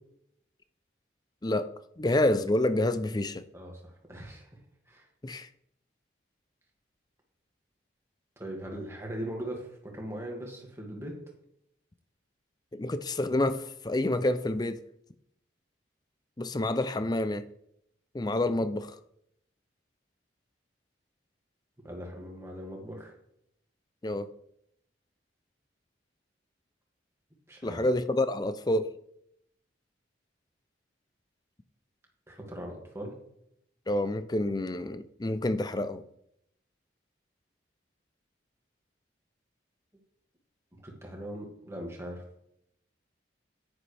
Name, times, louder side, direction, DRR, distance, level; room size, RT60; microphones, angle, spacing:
voice 1, 1.4-3.5 5.2-5.5 12.7-14.8 16.4-17.5 18.1-19.0 24.0-24.3 27.6-28.9 33.9-36.0, left 1 dB, 20° left, 0.4 m, -28 dB
voice 2, 3.5-4.5 4.9-5.1 8.4-11.1 21.8-23.1 27.5-27.8 32.3-33.1 40.8-42.2, right 1 dB, 15° right, 2.1 m, -40 dB
10.0 x 9.7 x 3.4 m
head